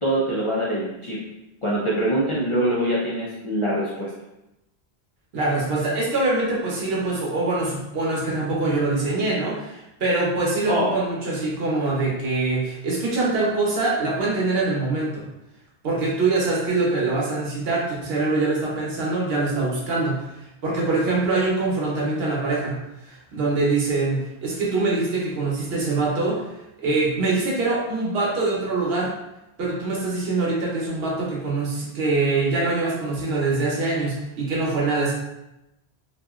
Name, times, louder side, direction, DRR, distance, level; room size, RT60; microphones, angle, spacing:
voice 1, 0.0-1.2 1.6-4.1 10.7-10.9, right 1 dB, 40° left, -8 dB, 0.5 m, -24 dB
voice 2, 5.3-15.2 15.8-26.4 26.8-29.1 29.6-35.1, right 3 dB, 70° right, -4 dB, 1.0 m, -24 dB
2.8 x 2.5 x 2.3 m, 0.92 s
omnidirectional pair, 1.1 m